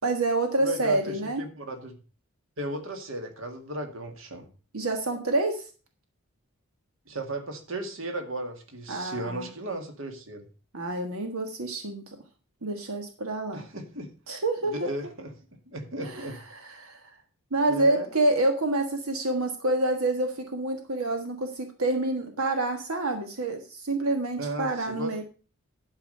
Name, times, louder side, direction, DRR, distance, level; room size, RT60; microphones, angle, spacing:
voice 1, 0.0-1.4 4.7-5.6 8.9-9.5 10.7-12.0 12.6-13.6 14.3-14.9 16.0-16.3 16.6-17.0 17.5-25.2, right 2 dB, 85° right, 4 dB, 1.5 m, -27 dB
voice 2, 0.6-2.0 2.6-4.5 7.1-10.5 13.5-14.1 14.7-15.3 15.7-16.4 17.7-18.1 24.4-25.1, right 1 dB, 65° right, 5 dB, 2.0 m, -35 dB
11.5 x 4.9 x 6.6 m, 0.37 s
head